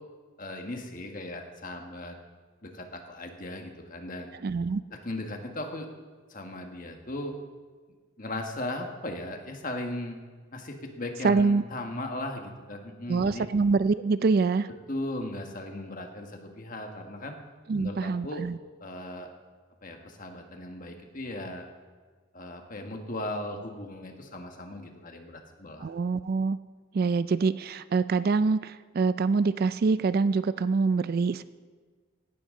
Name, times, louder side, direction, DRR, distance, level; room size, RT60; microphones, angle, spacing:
voice 1, 0.4-2.1 2.6-4.3 5.0-5.9 6.3-7.3 8.2-10.2 10.5-13.5 14.9-17.4 17.8-18.4 18.8-19.3 19.8-21.6 22.3-25.9, left 1 dB, 40° left, 3 dB, 1.5 m, -37 dB
voice 2, 4.4-4.8 11.2-11.6 13.1-14.7 17.7-18.6 25.8-26.6 26.9-31.4, right 4 dB, 45° right, 15 dB, 0.3 m, -25 dB
17.0 x 12.5 x 3.8 m, 1.5 s
head